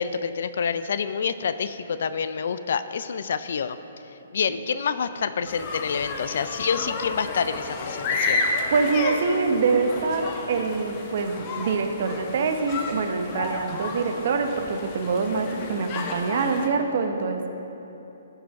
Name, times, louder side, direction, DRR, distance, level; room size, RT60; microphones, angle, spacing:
voice 1, 0.0-3.8 4.3-8.4, left 6 dB, 65° left, 13 dB, 0.4 m, -27 dB
sound 1, 5.5-16.7, left 3 dB, 35° left, 0.9 m, -31 dB
voice 2, 8.7-17.5, right 4 dB, 55° right, 6 dB, 0.8 m, -25 dB
14.0 x 4.9 x 4.6 m, 3.0 s
hypercardioid pair, 145°, 0 cm